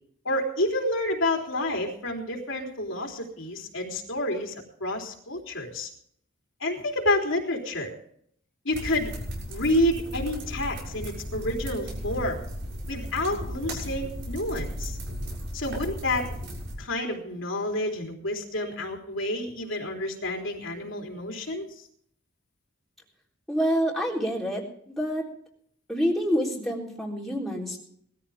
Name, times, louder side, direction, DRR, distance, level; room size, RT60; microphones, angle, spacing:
voice 1, 0.2-5.9 6.6-7.9 8.7-9.1 9.5-12.4 12.9-15.0 15.5-16.3 16.8-21.7, left 1 dB, 65° left, 1 dB, 3.6 m, -29 dB
sound 1, 8.7-16.8, equal, 60° right, 6.8 m, -35 dB
voice 2, 23.5-25.3 25.9-27.8, equal, ahead, -4 dB, 3.8 m, -27 dB
20.0 x 14.5 x 3.6 m, 0.64 s
head